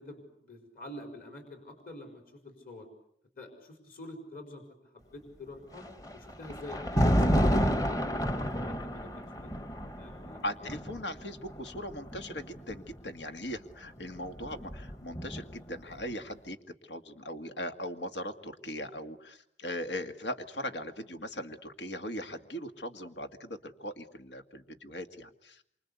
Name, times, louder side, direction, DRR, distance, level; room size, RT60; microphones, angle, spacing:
voice 1, 0.0-2.9 3.4-5.9 6.1-8.3 8.5-10.8, left 2 dB, 55° left, 5 dB, 5.0 m, -47 dB
Thunder, 5.7-12.9 14.0-15.7, equal, 20° left, 1.1 m, -30 dB
voice 2, 10.4-16.6 16.8-25.6, left 1 dB, 90° left, 8 dB, 2.1 m, -39 dB
27.5 x 25.0 x 8.3 m, 0.71 s
head